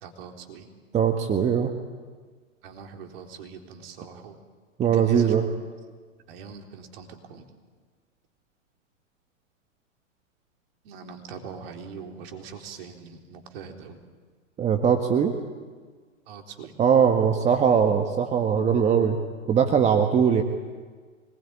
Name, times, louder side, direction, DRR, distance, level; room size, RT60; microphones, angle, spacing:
voice 1, 0.0-0.7 2.6-4.4 4.9-5.6 6.3-7.5 10.8-14.0 16.3-16.8, right 6 dB, 45° right, 4 dB, 3.9 m, -42 dB
voice 2, 0.9-1.7 4.8-5.4 14.6-15.3 16.8-19.2 19.5-20.4, right 7 dB, 15° right, 5 dB, 1.5 m, -21 dB
25.0 x 21.0 x 9.7 m, 1.5 s
figure-of-eight pair, 110°, 39 cm